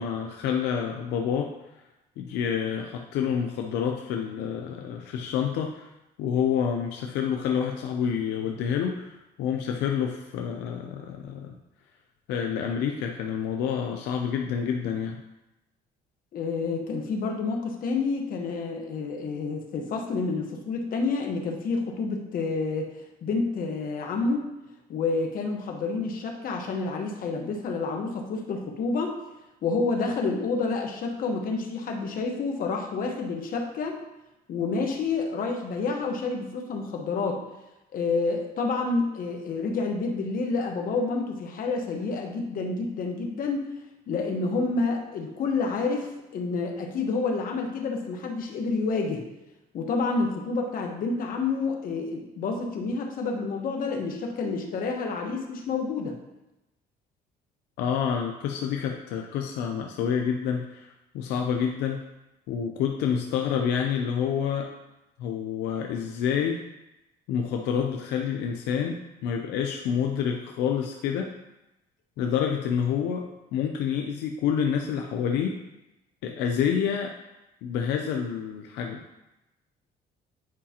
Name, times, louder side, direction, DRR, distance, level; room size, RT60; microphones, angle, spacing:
voice 1, 0.0-1.5 2.2-5.9 6.2-11.5 12.3-15.2 57.8-62.0 62.5-64.7 65.2-66.6 67.3-71.3 72.2-73.3 73.5-75.6 76.2-77.1 77.6-79.0, left 7 dB, 85° left, 3 dB, 0.6 m, -28 dB
voice 2, 16.3-22.9 23.2-24.5 24.9-29.2 29.6-34.0 34.5-37.4 37.9-43.7 44.1-49.2 49.7-56.2, left 4 dB, 55° left, 2 dB, 1.2 m, -29 dB
9.7 x 4.8 x 2.9 m, 0.97 s
cardioid pair, 110°, 17 cm